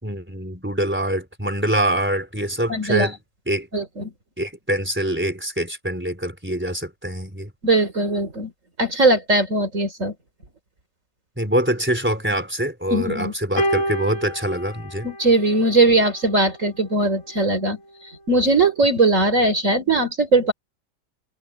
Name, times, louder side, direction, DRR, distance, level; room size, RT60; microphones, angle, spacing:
voice 1, 0.0-3.2 3.5-3.7 4.4-7.5 11.4-15.1, right 1 dB, 5° right, 3.6 m, -24 dB
voice 2, 2.7-3.1 3.7-4.1 7.6-8.5 8.8-10.1 12.9-13.3 15.0-17.8 18.0-20.5, right 2 dB, 45° right, 3.7 m, -19 dB
sound 1, 13.6-16.0 17.1-17.2, equal, 45° left, 5.3 m, -28 dB
omnidirectional pair, 1.8 m